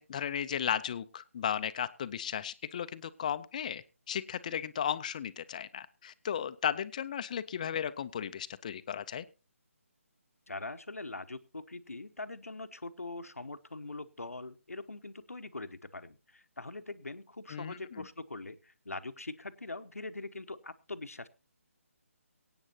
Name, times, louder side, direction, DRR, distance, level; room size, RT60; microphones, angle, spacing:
voice 1, 0.0-9.2 17.5-18.0, left 8 dB, 30° left, 13 dB, 0.6 m, -35 dB
voice 2, 10.5-21.3, left 2 dB, 80° left, 11 dB, 1.0 m, -42 dB
23.0 x 8.9 x 2.9 m, 0.30 s
figure-of-eight pair, 150°, 8 cm